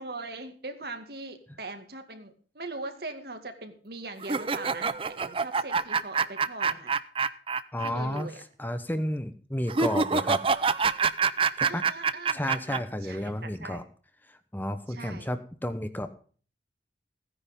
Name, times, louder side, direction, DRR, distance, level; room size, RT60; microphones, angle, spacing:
voice 1, 0.0-6.9 7.8-8.4 11.6-13.8 14.9-15.3, right 2 dB, 60° right, 7 dB, 2.2 m, -40 dB
sound 1, 4.2-7.9 8.2-8.3 9.7-12.8, right 5 dB, 30° right, 0.6 m, -26 dB
voice 2, 7.7-8.3 8.6-10.4 11.6-11.8 12.3-13.8 14.3-16.1, left 1 dB, 10° left, 10 dB, 0.9 m, -32 dB
16.0 x 10.0 x 5.2 m, 0.43 s
head